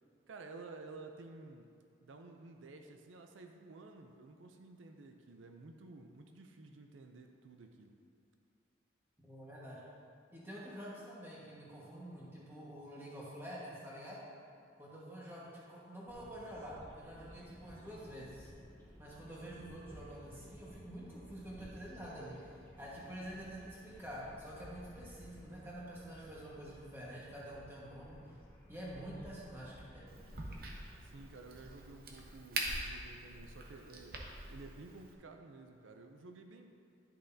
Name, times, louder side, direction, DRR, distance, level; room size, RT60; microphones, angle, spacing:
voice 1, 0.3-1.7 2.0-8.0 31.0-36.7, right 3 dB, 90° right, 4 dB, 0.5 m, -53 dB
voice 2, 9.2-9.8 10.3-14.2 14.8-18.5 19.0-28.3 28.7-30.1, equal, 10° right, -7 dB, 1.5 m, -48 dB
sound 1, 16.1-31.7, equal, 10° left, 1.0 m, -56 dB
Crack, 30.1-35.1, right 2 dB, 50° right, 0.8 m, -44 dB
10.5 x 6.5 x 2.7 m, 2.3 s
head